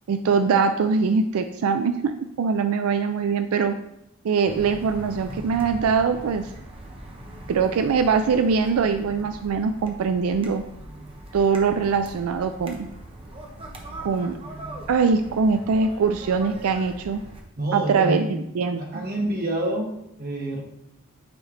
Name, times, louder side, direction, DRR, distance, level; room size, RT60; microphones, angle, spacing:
voice 1, 0.1-3.8 4.2-6.5 7.5-10.6 11.3-12.9 14.0-14.4 14.9-17.2 17.7-19.1, right 5 dB, 90° right, 9 dB, 0.4 m, -22 dB
sound 1, 4.5-17.4, right 1 dB, 25° right, 0.8 m, -41 dB
voice 2, 17.6-18.4 18.8-19.9 20.2-20.6, right 1 dB, 45° right, 0 dB, 1.2 m, -27 dB
9.0 x 3.3 x 3.7 m, 0.83 s
head